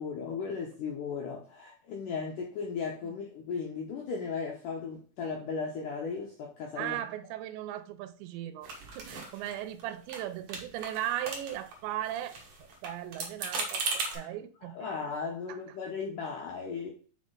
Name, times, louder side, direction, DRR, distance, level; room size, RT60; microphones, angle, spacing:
voice 1, 0.0-7.0 14.1-14.3 14.6-16.9, left 5 dB, 80° left, 1.9 m, -36 dB
voice 2, 6.8-12.4 12.8-14.9, right 12 dB, 90° right, 3.0 m, -37 dB
sound 1, 8.6-9.8 10.1-10.2 10.5-11.8 12.1-14.2, right 3 dB, 65° right, 1.6 m, -37 dB
5.9 x 5.3 x 3.8 m
omnidirectional pair, 5.0 m